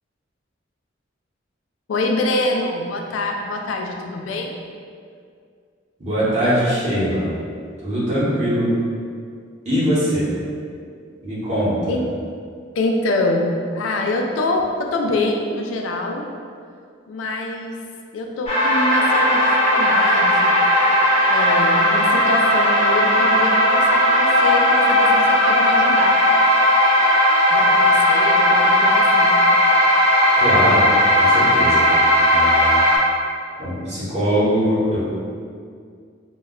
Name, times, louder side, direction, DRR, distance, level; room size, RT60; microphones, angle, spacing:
voice 1, 1.9-4.6 11.9-12.1 12.8-16.2 17.1-17.8 18.1-20.6 21.3-26.2 27.5-29.3, left 2 dB, 85° left, 2 dB, 0.3 m, -25 dB
voice 2, 6.0-7.3 7.8-8.7 9.6-10.3 11.2-12.0 30.3-30.9 31.2-31.9 32.3-32.8 33.6-35.1, equal, 35° right, -10 dB, 0.8 m, -21 dB
sound 1, 18.5-33.0, equal, 30° left, 0.7 m, -16 dB
2.2 x 2.1 x 3.6 m, 2.2 s
head